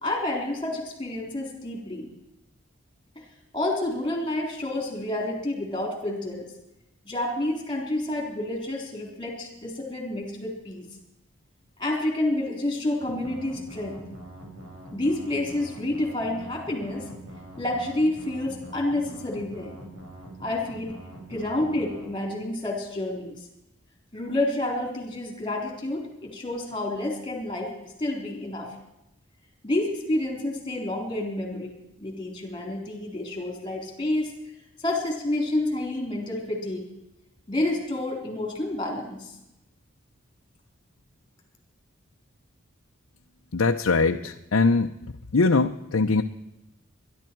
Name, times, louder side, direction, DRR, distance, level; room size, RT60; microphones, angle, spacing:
voice 1, 0.0-2.1 3.5-6.5 7.1-10.9 11.8-14.0 14.9-17.1 17.6-19.8 20.4-21.0 21.3-23.4 24.1-28.7 29.6-31.7 32.0-34.3 34.8-36.9 37.5-39.3, left 1 dB, 25° left, 1 dB, 3.7 m, -29 dB
sound 1, 13.0-22.0, right 1 dB, 85° right, 4.8 m, -44 dB
voice 2, 43.5-46.2, left 3 dB, 85° left, 3 dB, 0.7 m, -22 dB
23.0 x 11.5 x 4.6 m, 0.88 s
head